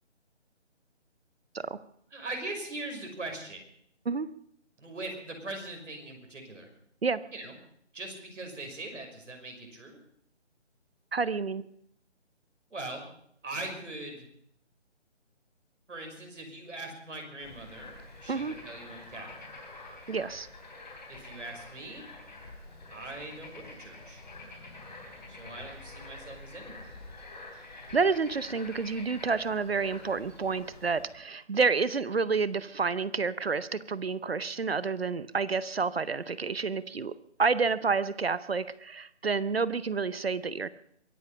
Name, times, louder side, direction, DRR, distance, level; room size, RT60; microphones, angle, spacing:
voice 1, 2.1-3.6 4.8-6.7 7.3-7.5 7.9-10.0 12.7-13.0 13.4-14.3 15.9-17.9 18.2-19.5 21.1-22.1 22.9-24.2 25.3-26.9, right 2 dB, 85° right, 2 dB, 5.9 m, -41 dB
voice 2, 11.1-11.6 18.3-18.5 20.1-20.5 27.9-37.1 37.4-40.7, right 4 dB, 55° right, 17 dB, 0.7 m, -29 dB
Bird / Frog, 17.4-31.1, left 2 dB, 40° left, 3.2 m, -47 dB
23.0 x 10.5 x 5.7 m, 0.68 s
hypercardioid pair, 180°, 36 cm